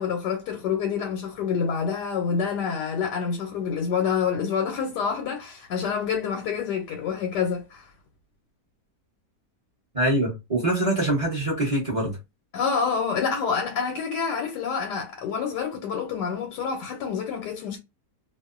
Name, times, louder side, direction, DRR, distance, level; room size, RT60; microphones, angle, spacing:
voice 1, 0.0-7.9 12.5-17.8, left 6 dB, 90° left, 1.2 m, -27 dB
voice 2, 9.9-12.2, right 1 dB, 35° right, 0.5 m, -24 dB
2.8 x 2.0 x 2.4 m
omnidirectional pair, 1.8 m